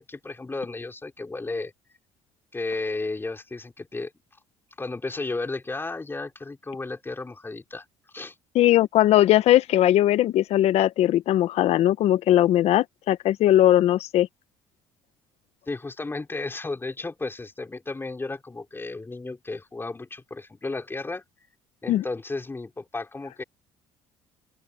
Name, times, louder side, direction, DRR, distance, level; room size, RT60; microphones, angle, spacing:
voice 1, 0.0-1.7 2.5-4.1 4.8-7.8 8.1-8.3 15.7-21.2 21.8-23.4, left 3 dB, 20° left, 3.8 m, -33 dB
voice 2, 8.5-14.3 21.9-22.0, left 13 dB, 65° left, 1.1 m, -19 dB
open air
supercardioid pair, 75°, 12 cm